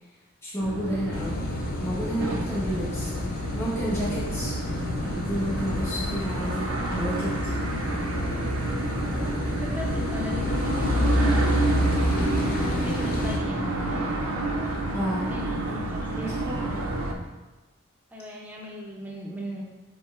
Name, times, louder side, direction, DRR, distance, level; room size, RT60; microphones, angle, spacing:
voice 1, 0.4-1.3 1.8-3.1 3.5-4.6 5.0-7.5 14.9-15.3 15.7-16.9, equal, 10° left, -7 dB, 1.0 m, -31 dB
sound 1, 0.6-17.1, right 2 dB, 80° right, 0.5 m, -30 dB
Car passing by / Idling / Accelerating revving vroom, 1.1-13.4, left 1 dB, 40° left, 0.4 m, -29 dB
voice 2, 9.1-11.6 12.4-14.1 15.0-16.9 18.1-19.6, left 1 dB, 10° right, -3 dB, 0.6 m, -38 dB
5.5 x 3.8 x 2.4 m, 1.2 s
head